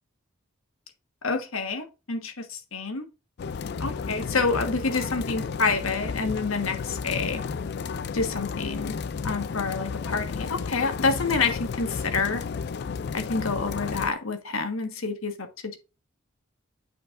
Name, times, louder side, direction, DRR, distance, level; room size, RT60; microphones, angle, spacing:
voice 1, 1.2-3.1 3.8-7.4 8.1-9.0 9.2-12.4 13.1-15.8, left 4 dB, 85° left, 1.4 m, -28 dB
sound 1, 3.4-14.1, left 5 dB, 55° left, 0.4 m, -32 dB
8.6 x 5.1 x 2.5 m
head